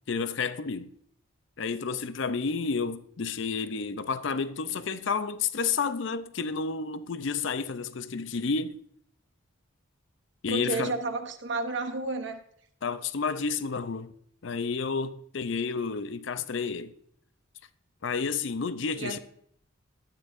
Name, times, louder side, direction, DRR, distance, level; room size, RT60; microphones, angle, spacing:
voice 1, 0.1-0.9 1.6-8.8 10.4-10.9 12.8-14.1 14.4-16.9 18.0-19.2, left 5 dB, 60° left, 0.5 m, -30 dB
voice 2, 10.5-12.4 19.0-19.2, right 3 dB, 60° right, 0.8 m, -31 dB
12.0 x 9.2 x 2.6 m
head